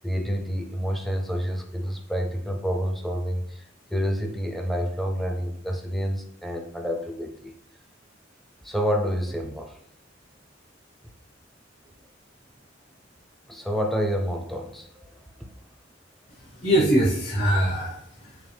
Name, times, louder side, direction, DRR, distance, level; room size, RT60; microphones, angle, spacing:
voice 1, 0.0-7.5 8.6-9.8 13.5-15.2, equal, ahead, 2 dB, 0.5 m, -28 dB
voice 2, 16.4-18.4, right 1 dB, 50° left, -7 dB, 1.4 m, -23 dB
6.1 x 2.2 x 3.4 m, 0.67 s
head